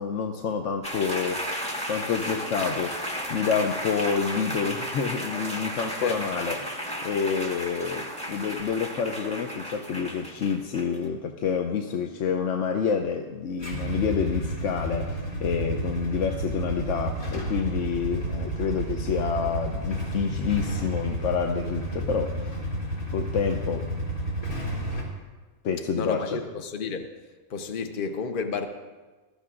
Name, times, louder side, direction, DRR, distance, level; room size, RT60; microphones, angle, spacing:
voice 1, 0.0-1.5 1.9-22.5 23.1-23.9 25.6-26.4, left 6 dB, 65° left, 4 dB, 1.0 m, -28 dB
sound 1, 0.8-11.1, equal, 5° left, 1.4 m, -34 dB
Motorcycle / Engine starting / Idling, 13.6-25.0, right 1 dB, 85° left, 3.6 m, -31 dB
voice 2, 25.9-27.1 27.5-28.7, left 5 dB, 45° left, 6 dB, 0.9 m, -31 dB
19.5 x 13.5 x 2.5 m, 1.3 s
omnidirectional pair, 1.5 m